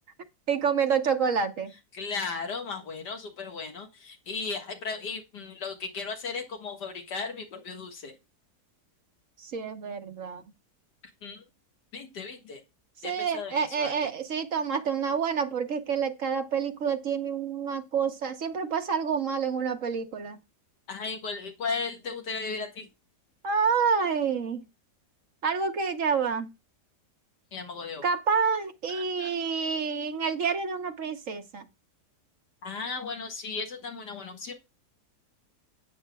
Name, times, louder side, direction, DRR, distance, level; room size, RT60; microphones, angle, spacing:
voice 1, 0.5-1.7 9.4-10.4 13.0-20.4 23.4-24.6 25.4-26.5 28.0-31.7, right 6 dB, 55° right, 1.3 m, -28 dB
voice 2, 1.9-8.1 11.2-11.4 11.9-12.6 13.0-13.9 20.9-22.9 27.5-28.0 28.9-29.3 32.6-34.5, left 4 dB, 90° left, 2.3 m, -36 dB
12.0 x 8.9 x 2.3 m
omnidirectional pair, 1.7 m